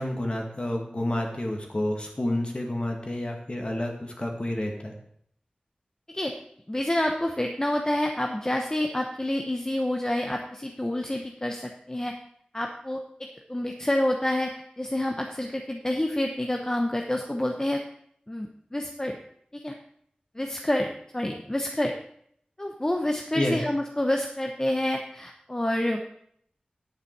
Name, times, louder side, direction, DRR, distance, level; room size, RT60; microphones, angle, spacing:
voice 1, 0.0-4.9 23.3-23.6, left 1 dB, 40° left, 1 dB, 2.1 m, -29 dB
voice 2, 6.7-12.1 12.5-17.8 18.3-19.2 19.5-19.7 20.3-21.9 22.6-26.0, left 1 dB, 25° left, 3 dB, 0.9 m, -28 dB
9.9 x 8.5 x 4.7 m, 0.67 s
wide cardioid pair, 65°, 3 cm